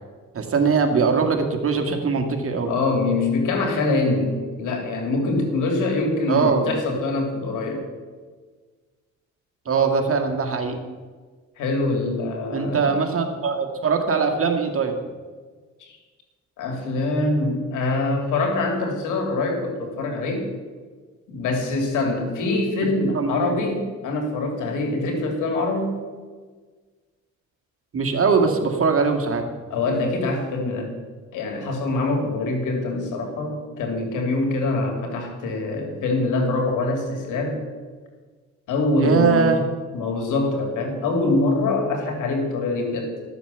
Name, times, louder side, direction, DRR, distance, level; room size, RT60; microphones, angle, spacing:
voice 1, 0.3-2.7 6.3-6.7 9.7-10.8 12.5-15.0 23.1-23.6 27.9-29.5 39.0-39.6, right 5 dB, 50° right, 4 dB, 1.8 m, -21 dB
voice 2, 2.7-7.8 11.6-12.9 15.8-16.0 16.6-20.5 21.3-26.0 29.7-30.9 31.3-37.6 38.7-39.4 39.9-43.1, left 2 dB, 85° left, 2 dB, 2.7 m, -24 dB
12.5 x 7.2 x 6.9 m, 1.4 s
cardioid pair, 90°, 30 cm